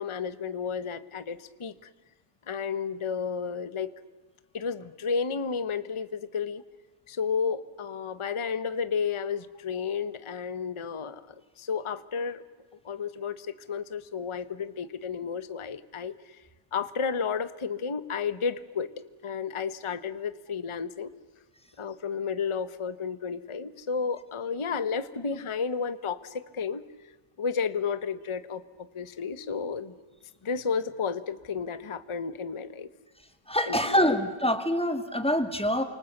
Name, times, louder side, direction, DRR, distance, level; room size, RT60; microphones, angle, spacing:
voice 1, 0.0-1.7 2.5-3.9 4.5-6.6 7.1-11.2 11.6-12.4 12.8-16.1 16.7-18.9 19.2-21.1 21.8-26.8 27.4-29.9 30.4-32.9 33.7-34.0, left 6 dB, 25° left, 13 dB, 0.7 m, -32 dB
voice 2, 33.5-35.8, equal, 5° left, 7 dB, 2.0 m, -25 dB
29.0 x 25.5 x 7.9 m, 1.3 s
omnidirectional pair, 1.7 m